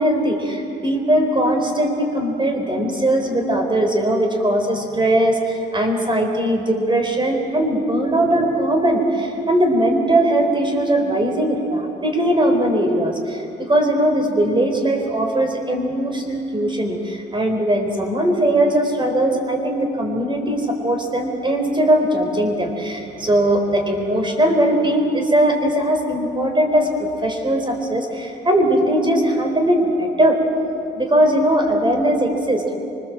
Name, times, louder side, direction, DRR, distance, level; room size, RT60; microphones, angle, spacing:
voice 1, 0.0-30.4 30.9-32.7, right 1 dB, 25° right, 4 dB, 4.3 m, -19 dB
25.0 x 20.5 x 7.6 m, 2.7 s
cardioid pair, 90°, 20 cm